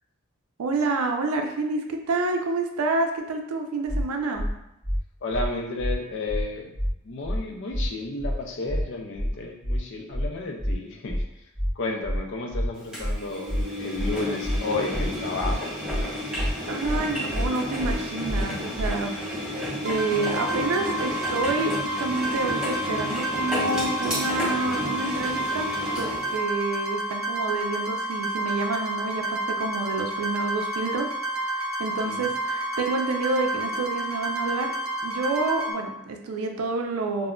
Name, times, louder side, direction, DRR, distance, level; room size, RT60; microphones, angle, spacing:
voice 1, 0.6-4.5 16.7-19.1 19.4-25.7 26.0-34.7 35.0-37.3, right 3 dB, 85° right, 4 dB, 0.4 m, -28 dB
sound 1, 3.9-4.0 4.3-4.5 4.8-5.0 5.3-5.5 5.8-5.9 6.3-6.4 6.7-6.9 7.2-7.4 7.7-7.9 8.2-8.3 8.7-8.8 9.1-9.3 9.6-9.8 10.1-10.3 10.6-10.7 11.1-11.2 11.5-11.7 12.0-12.2 12.5-12.7 13.0-13.1 13.5-13.6 13.9-14.1 14.4-14.6 14.9-15.1 15.4-15.5 15.9-16.0 16.3-16.5 16.8-17.0 17.3-17.5 17.8-17.9 18.3-18.4 18.7-18.9, equal, 20° left, 1.0 m, -27 dB
voice 2, 5.2-6.7 7.0-11.2 11.8-15.7 32.0-32.3, left 2 dB, 55° left, 2 dB, 0.4 m, -32 dB
Engine, 12.9-26.3, left 1 dB, 5° right, 0.5 m, -32 dB
sound 2, 19.8-35.7, right 1 dB, 45° right, 0.7 m, -30 dB
2.2 x 2.1 x 3.6 m, 0.85 s
head